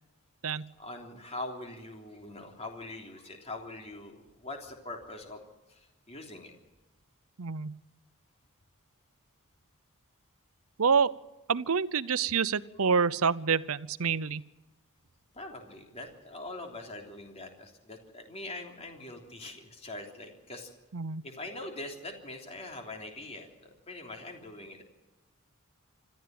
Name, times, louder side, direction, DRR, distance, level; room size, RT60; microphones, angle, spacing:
voice 1, 0.8-5.4 5.7-6.5 15.3-20.7 21.2-24.8, left 2 dB, 30° left, 2 dB, 3.3 m, -43 dB
voice 2, 7.4-7.7 10.8-11.2 11.5-14.4 20.9-21.2, right 6 dB, 75° right, 17 dB, 0.7 m, -27 dB
25.5 x 14.0 x 7.8 m, 1.1 s
head